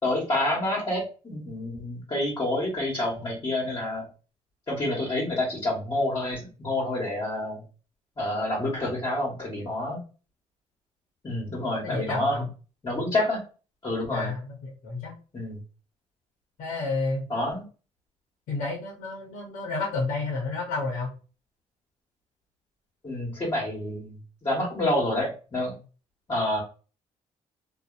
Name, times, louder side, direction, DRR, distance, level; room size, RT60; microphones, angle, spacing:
voice 1, 0.0-4.0 4.7-7.6 8.2-10.0 11.2-12.5 12.8-13.4 13.8-14.3 15.3-15.6 17.3-17.6 23.0-25.7 26.3-26.6, left 1 dB, 35° left, -5 dB, 1.3 m, -28 dB
voice 2, 11.8-12.5 14.1-15.1 16.6-17.2 18.5-21.2, left 3 dB, 80° left, -2 dB, 0.9 m, -31 dB
2.6 x 2.4 x 2.4 m, 0.35 s
supercardioid pair, 70°, 13 cm